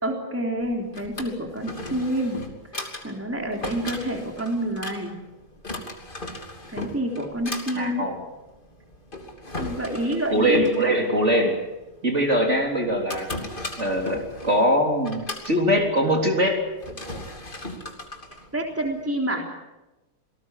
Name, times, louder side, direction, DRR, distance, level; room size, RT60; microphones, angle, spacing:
voice 1, 0.0-2.4 2.7-5.1 6.7-8.1 9.6-10.7 18.5-19.4, right 1 dB, 5° right, 1 dB, 3.5 m, -28 dB
Drawer open or close, 0.6-19.2, left 1 dB, 25° left, 3.0 m, -38 dB
voice 2, 7.7-8.2 10.3-11.6 12.0-13.3 13.8-16.6, equal, 30° right, 1 dB, 4.0 m, -22 dB
28.0 x 19.5 x 8.3 m, 1.0 s
omnidirectional pair, 2.3 m